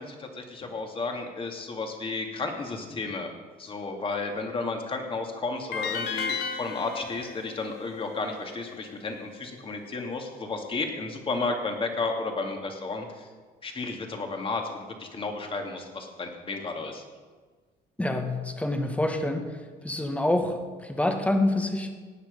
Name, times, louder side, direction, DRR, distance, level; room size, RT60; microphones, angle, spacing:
voice 1, 0.0-3.3 3.6-13.3 13.6-17.0, left 3 dB, 30° left, 3 dB, 2.3 m, -33 dB
sound 1, 5.7-8.9, left 6 dB, 80° left, 1.4 m, -34 dB
voice 2, 18.0-19.5 19.8-21.9, left 1 dB, 10° left, 5 dB, 1.5 m, -26 dB
18.0 x 9.1 x 5.3 m, 1.4 s
cardioid pair, 110°, 17 cm